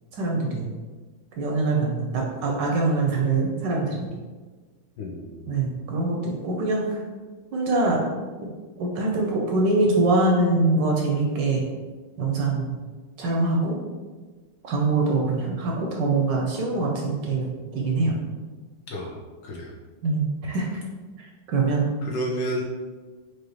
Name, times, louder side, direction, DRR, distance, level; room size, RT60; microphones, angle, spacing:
voice 1, 0.1-0.7 1.4-4.1 5.5-7.0 7.5-8.0 8.4-11.6 12.2-12.7 13.2-13.8 14.6-18.2 20.0-20.7 21.2-21.9, right 3 dB, 70° right, -1 dB, 1.1 m, -24 dB
voice 2, 5.0-5.6 18.9-19.7 22.0-22.6, equal, 70° left, -1 dB, 1.2 m, -31 dB
4.6 x 2.4 x 3.1 m, 1.4 s
omnidirectional pair, 2.2 m